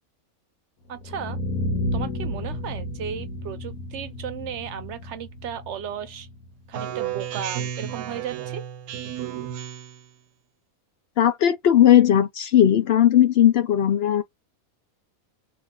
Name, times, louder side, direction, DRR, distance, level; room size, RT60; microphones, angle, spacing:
sound 1, 0.9-6.9, left 1 dB, 85° left, 1.4 m, -32 dB
voice 1, 0.9-1.4 1.9-6.3 6.7-8.6, right 8 dB, 65° right, 0.8 m, -35 dB
Speech synthesizer, 6.7-10.1, right 10 dB, 85° right, 1.1 m, -32 dB
voice 2, 11.2-14.2, left 10 dB, 65° left, 0.6 m, -17 dB
3.0 x 2.7 x 3.6 m
omnidirectional pair, 1.5 m